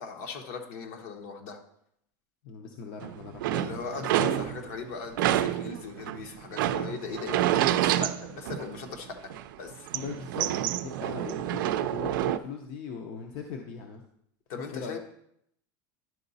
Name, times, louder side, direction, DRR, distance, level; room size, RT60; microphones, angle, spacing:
voice 1, 0.0-1.6 3.5-9.3 9.6-9.9 14.5-15.0, left 5 dB, 60° left, 4 dB, 1.1 m, -39 dB
voice 2, 2.4-4.1 9.9-14.0 14.7-15.0, left 6 dB, 45° left, 3 dB, 0.7 m, -40 dB
sound 1, 3.0-4.8 5.2-9.0 9.3-12.4, right 12 dB, 90° right, 0.4 m, -28 dB
10.5 x 3.9 x 4.1 m, 0.73 s
supercardioid pair, 160°, 11 cm